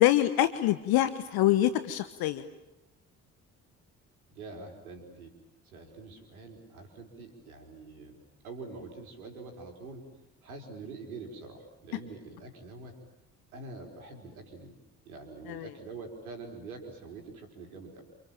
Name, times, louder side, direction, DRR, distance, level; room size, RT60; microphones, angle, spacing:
voice 1, 0.0-2.4 15.5-15.7, left 14 dB, 55° left, 14 dB, 1.3 m, -25 dB
voice 2, 4.3-5.3 5.6-10.0 10.4-12.9 13.5-14.7 15.0-18.0, right 3 dB, 75° right, 3 dB, 4.6 m, -45 dB
29.5 x 27.0 x 7.5 m, 0.95 s
figure-of-eight pair, 45°, 43 cm